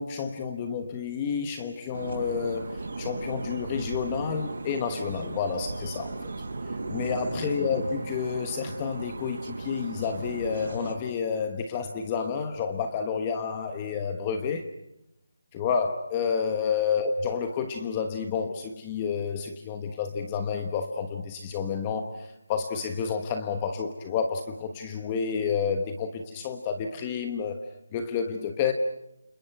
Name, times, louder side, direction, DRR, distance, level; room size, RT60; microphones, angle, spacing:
voice 1, 0.0-6.3 6.7-14.7 15.5-27.6 27.9-28.7, left 6 dB, 15° left, 6 dB, 1.2 m, -30 dB
sound 1, 1.9-10.9, right 2 dB, 50° right, 6.6 m, -36 dB
29.5 x 28.0 x 5.9 m, 0.84 s
figure-of-eight pair, 170°, 0 cm